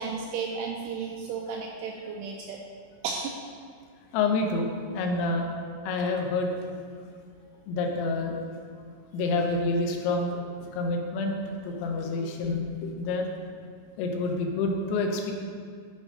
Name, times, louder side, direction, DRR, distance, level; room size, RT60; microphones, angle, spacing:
voice 1, 0.0-2.6 3.0-3.4, right 5 dB, 85° right, 1 dB, 2.4 m, -33 dB
voice 2, 4.1-4.7 4.9-5.5 5.9-6.6 7.7-8.4 9.1-10.4 10.7-13.3 14.0-15.3, left 3 dB, 85° left, 2 dB, 3.1 m, -28 dB
10.5 x 3.6 x 5.4 m, 2.1 s
omnidirectional pair, 5.1 m